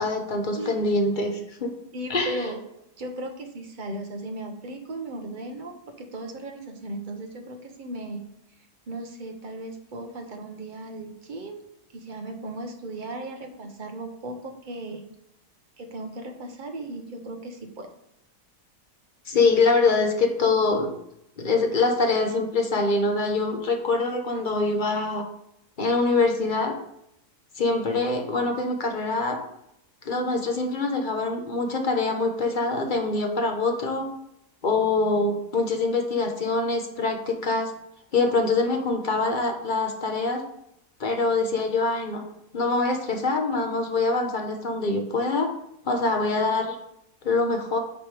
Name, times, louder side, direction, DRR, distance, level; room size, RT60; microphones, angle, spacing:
voice 1, 0.0-1.7 2.1-2.4 19.3-20.9 21.4-25.2 25.8-26.7 27.6-29.4 30.0-34.1 34.6-37.7 38.1-40.4 41.0-42.2 42.5-45.5 45.8-46.8 47.2-47.8, left 3 dB, 40° left, 3 dB, 0.8 m, -24 dB
voice 2, 1.9-2.6 3.0-8.3 8.9-11.6 11.9-15.1 15.8-17.9, right 2 dB, 40° right, 4 dB, 0.8 m, -36 dB
9.0 x 3.3 x 4.8 m, 0.79 s
omnidirectional pair, 1.8 m